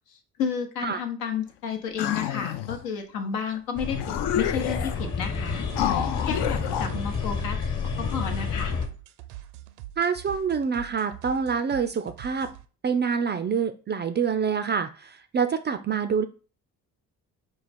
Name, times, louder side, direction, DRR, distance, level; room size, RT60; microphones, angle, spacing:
voice 1, 0.4-4.0 4.3-7.6 8.0-8.7, left 6 dB, 80° left, 4 dB, 0.9 m, -31 dB
sound 1, 2.0-2.8 3.5-3.6 3.9-5.1 5.7-6.9, left 10 dB, 60° left, 0.6 m, -29 dB
sound 2, 3.8-8.9, left 5 dB, 40° left, 1.1 m, -30 dB
sound 3, 5.0-12.6, right 14 dB, 75° right, 0.6 m, -43 dB
voice 2, 10.0-12.5 12.8-16.2, right 6 dB, 25° right, 8 dB, 0.3 m, -26 dB
4.7 x 2.4 x 4.1 m, 0.37 s
hypercardioid pair, 50°, 47 cm